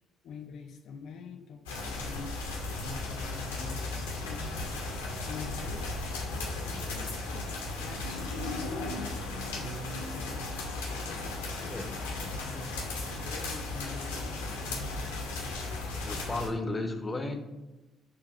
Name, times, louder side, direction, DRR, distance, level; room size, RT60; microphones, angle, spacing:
voice 1, 0.2-2.4 2.8-4.7 5.3-5.9 6.7-9.7 11.0-15.1, left 6 dB, 55° left, 6 dB, 0.5 m, -46 dB
sound 1, 1.7-16.5, left 2 dB, 75° left, 0.9 m, -36 dB
voice 2, 11.6-12.0 16.0-17.4, left 2 dB, 20° left, 5 dB, 0.8 m, -34 dB
6.9 x 2.7 x 5.3 m, 1.1 s
figure-of-eight pair, 45°, 0 cm